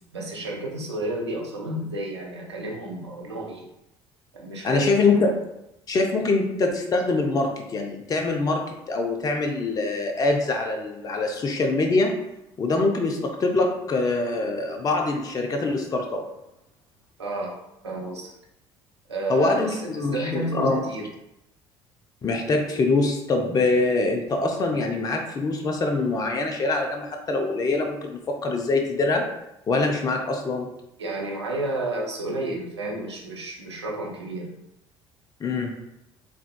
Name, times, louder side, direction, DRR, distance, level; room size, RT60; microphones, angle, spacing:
voice 1, 0.1-3.7 4.3-5.0 17.2-17.5 17.8-18.3 19.1-21.0 31.0-34.5, right 2 dB, 80° right, -3 dB, 0.7 m, -31 dB
voice 2, 4.6-5.3 5.9-8.6 8.9-12.1 12.6-16.2 19.3-20.8 22.2-29.3 29.7-30.7 35.4-35.7, left 3 dB, 25° left, 3 dB, 0.5 m, -24 dB
3.5 x 3.3 x 2.2 m, 0.85 s
figure-of-eight pair, 55°, 14 cm